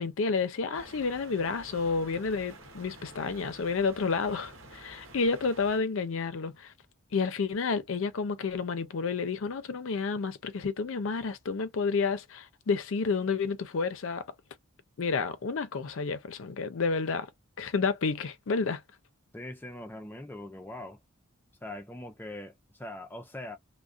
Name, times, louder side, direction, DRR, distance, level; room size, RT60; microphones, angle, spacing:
voice 1, 0.0-6.7 7.1-14.2 15.0-17.3 17.6-18.8, left 4 dB, 65° left, 0.5 m, -30 dB
sound 1, 0.7-5.8, right 2 dB, 65° right, 1.0 m, -50 dB
voice 2, 19.3-21.0 21.6-23.6, left 1 dB, 10° left, 0.4 m, -42 dB
2.3 x 2.1 x 2.4 m
head